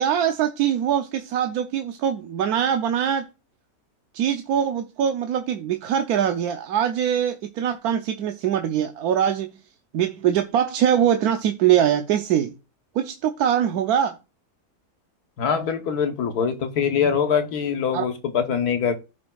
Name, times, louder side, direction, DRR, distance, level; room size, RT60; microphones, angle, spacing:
voice 1, 0.0-3.3 4.1-9.5 9.9-12.5 12.9-14.2 17.9-18.0, right 9 dB, 85° right, 1.1 m, -22 dB
voice 2, 15.4-18.9, left 7 dB, 85° left, 1.5 m, -23 dB
14.5 x 5.1 x 2.3 m
omnidirectional pair, 1.6 m